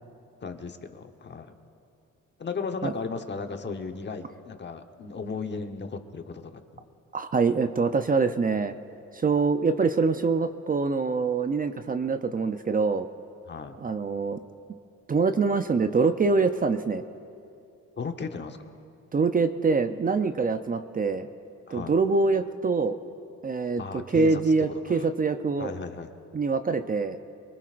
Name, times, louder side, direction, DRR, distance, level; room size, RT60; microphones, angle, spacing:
voice 1, 0.4-1.5 2.4-6.8 13.5-13.8 18.0-18.6 21.7-21.9 23.8-25.1 25.6-26.1, left 4 dB, 35° left, 6 dB, 1.1 m, -36 dB
voice 2, 7.1-8.8 9.1-13.1 13.8-14.4 15.1-17.0 19.1-21.3 21.7-23.0 23.4-25.7 26.3-27.2, right 4 dB, 30° right, 9 dB, 0.6 m, -24 dB
24.0 x 20.5 x 2.5 m, 2.6 s
cardioid pair, 90°, 30 cm